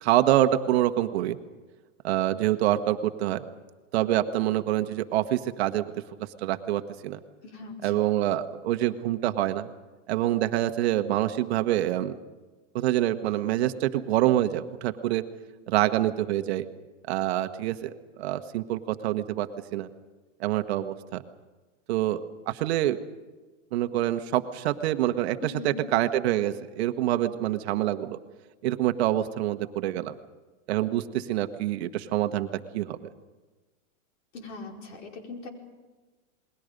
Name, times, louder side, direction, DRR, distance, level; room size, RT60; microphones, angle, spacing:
voice 1, 0.0-1.4 2.0-3.4 3.9-5.9 6.4-7.2 7.8-9.7 10.1-12.2 12.7-15.2 15.7-16.7 17.1-19.9 20.4-21.2 21.9-22.2 22.5-23.0 23.7-28.2 28.6-30.2 30.7-33.0, right 13 dB, 55° right, 9 dB, 1.3 m, -26 dB
voice 2, 7.4-7.9 25.4-25.9 34.3-35.5, left 4 dB, 65° left, 1 dB, 5.1 m, -40 dB
28.5 x 21.0 x 5.3 m, 1.3 s
supercardioid pair, 155°, 39 cm